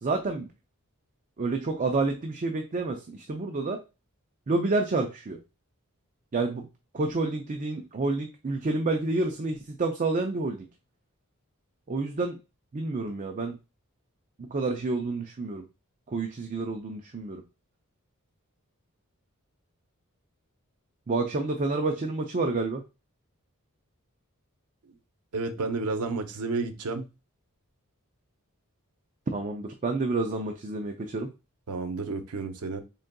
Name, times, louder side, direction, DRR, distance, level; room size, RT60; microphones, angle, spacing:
voice 1, 0.0-0.5 1.4-3.8 4.5-5.4 6.3-6.7 6.9-10.7 11.9-12.4 12.7-13.6 14.4-15.6 16.1-17.4 21.1-22.8 29.3-31.3, right 3 dB, 35° right, 0.5 m, -29 dB
voice 2, 25.3-27.0 31.7-32.8, right 3 dB, 90° right, 0.7 m, -31 dB
3.9 x 3.7 x 2.2 m
head